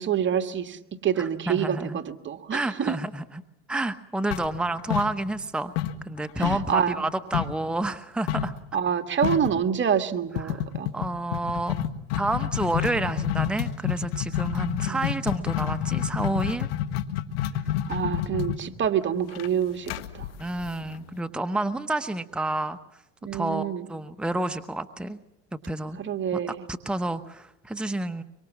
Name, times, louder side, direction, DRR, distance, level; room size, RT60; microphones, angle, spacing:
voice 1, 0.0-2.9 6.4-7.0 8.7-10.9 14.9-15.0 17.9-20.3 23.2-23.9 26.0-26.6, right 8 dB, 40° right, 7 dB, 2.0 m, -27 dB
voice 2, 1.2-2.0 2.5-3.4 3.7-5.7 6.0-8.5 10.4-10.6 10.9-11.8 12.1-16.7 20.4-22.8 23.3-25.2 25.7-26.0 26.3-28.2, right 2 dB, 5° right, 9 dB, 1.0 m, -29 dB
sound 1, 4.3-5.5 5.8-7.7 8.3-8.6 8.9-9.0 9.2-9.6 10.4-21.2, left 11 dB, 85° left, 1.8 m, -29 dB
25.0 x 24.0 x 7.4 m, 0.89 s
supercardioid pair, 90°, 30 cm